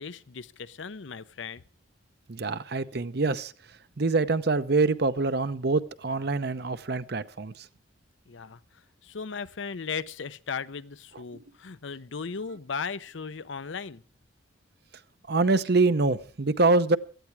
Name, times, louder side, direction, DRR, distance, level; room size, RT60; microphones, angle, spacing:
voice 1, 0.0-1.6 8.3-14.0, left 5 dB, 75° left, 0.7 m, -37 dB
voice 2, 2.3-3.5 4.0-7.7 15.3-17.0, right 3 dB, 55° right, 0.7 m, -25 dB
17.0 x 13.5 x 4.6 m
head